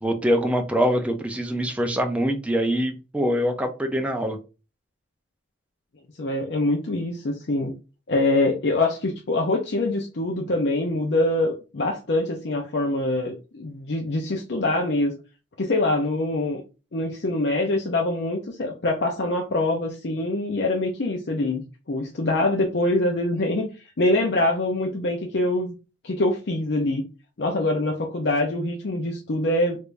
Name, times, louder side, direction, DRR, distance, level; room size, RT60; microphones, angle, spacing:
voice 1, 0.0-4.4, equal, 5° right, 0.5 m, -24 dB
voice 2, 6.2-7.7 8.1-15.2 15.6-16.6 16.9-23.7 24.0-25.7 26.0-27.0 27.4-29.8, left 2 dB, 60° left, 0.5 m, -24 dB
3.4 x 3.2 x 2.5 m
head